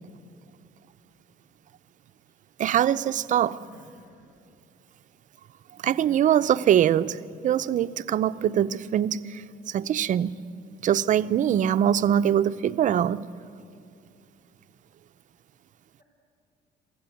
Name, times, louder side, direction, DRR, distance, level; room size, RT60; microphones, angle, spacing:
voice 1, 2.6-3.6 5.8-7.2 7.4-10.4 10.8-13.3, right 10 dB, 50° right, 0.6 m, -23 dB
voice 2, 3.6-4.3 5.8-6.6, left 2 dB, 55° left, 6.0 m, -52 dB
23.0 x 15.5 x 9.1 m
cardioid pair, 110°, 17 cm